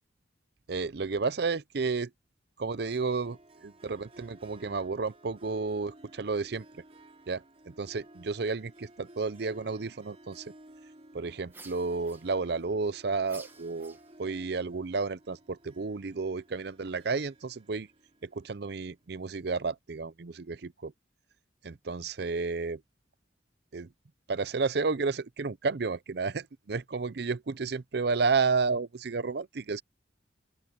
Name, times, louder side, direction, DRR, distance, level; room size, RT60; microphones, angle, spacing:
voice 1, 0.7-2.1 2.6-6.6 7.3-10.5 11.1-17.9 18.2-20.9 21.6-22.8 23.7-23.9 24.3-29.8, right 4 dB, 60° right, 0.6 m, -32 dB
Harp, 2.7-19.2, right 1 dB, 35° right, 3.7 m, -56 dB
sound 1, 11.5-12.7 13.2-14.4, right 3 dB, 10° right, 1.6 m, -52 dB
open air
head